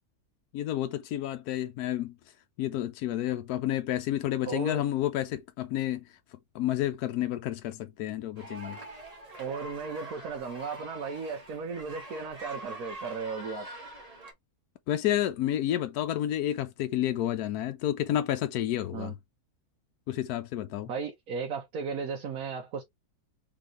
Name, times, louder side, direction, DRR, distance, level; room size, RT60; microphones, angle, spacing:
voice 1, 0.5-2.1 2.6-6.0 6.5-8.8 14.9-19.1 20.1-20.9, left 12 dB, 85° left, 1.1 m, -30 dB
voice 2, 4.4-4.8 9.4-13.7 18.9-19.1 20.9-22.8, right 5 dB, 70° right, 1.3 m, -35 dB
sound 1, 8.4-14.3, right 1 dB, 25° right, 1.5 m, -44 dB
3.9 x 3.6 x 3.0 m
omnidirectional pair, 1.6 m